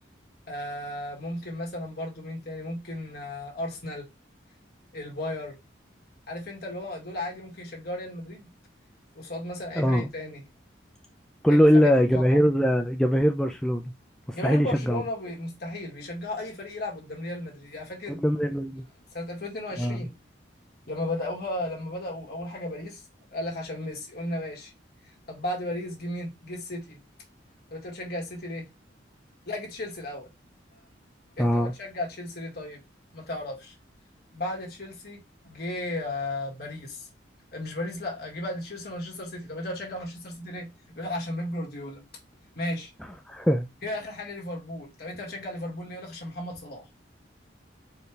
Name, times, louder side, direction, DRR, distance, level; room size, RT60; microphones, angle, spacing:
voice 1, 0.5-4.1 4.9-5.6 6.3-8.5 9.2-10.4 11.5-12.4 14.3-18.2 19.1-20.1 20.9-23.0 23.3-24.7 25.0-27.0 27.7-28.7 29.5-30.3 31.4-32.8 33.1-33.7 34.3-37.1 37.5-40.7 40.9-42.0 42.6-42.9 43.8-46.9, left 1 dB, 55° left, 1.9 m, -35 dB
voice 2, 9.8-10.1 11.4-13.9 14.3-15.0 18.2-18.8 19.8-20.1 31.4-31.7 43.3-43.7, equal, 5° left, 0.3 m, -22 dB
4.6 x 3.2 x 3.3 m
head